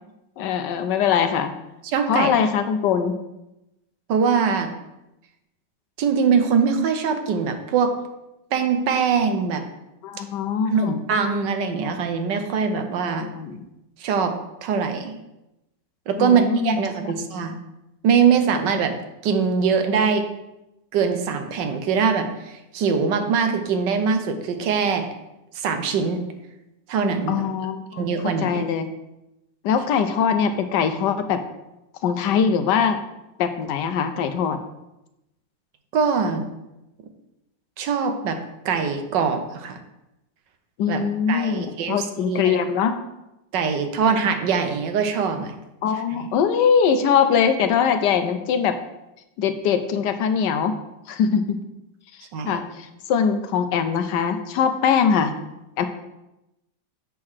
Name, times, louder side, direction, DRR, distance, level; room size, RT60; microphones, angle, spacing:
voice 1, 0.4-1.5 2.1-3.2 10.0-11.0 13.2-13.7 16.2-16.8 17.0-17.1 27.3-28.9 29.6-31.4 32.0-33.0 33.4-34.6 40.8-43.0 45.8-48.8 49.4-50.7 51.1-51.6 52.4-55.4 55.8-55.9, left 7 dB, 75° left, 9 dB, 1.2 m, -22 dB
voice 2, 1.9-2.3 4.1-4.7 6.0-7.9 8.5-9.6 10.7-13.3 14.0-14.4 14.6-15.1 16.1-17.5 18.0-18.9 19.2-20.2 20.9-25.1 25.5-26.2 26.9-27.5 28.0-28.6 35.9-36.4 37.8-38.4 38.6-39.8 40.9-41.0 41.3-42.6 43.5-45.5 52.3-52.6, right 6 dB, 75° right, 7 dB, 1.4 m, -22 dB
7.6 x 3.7 x 6.2 m, 0.92 s
omnidirectional pair, 2.0 m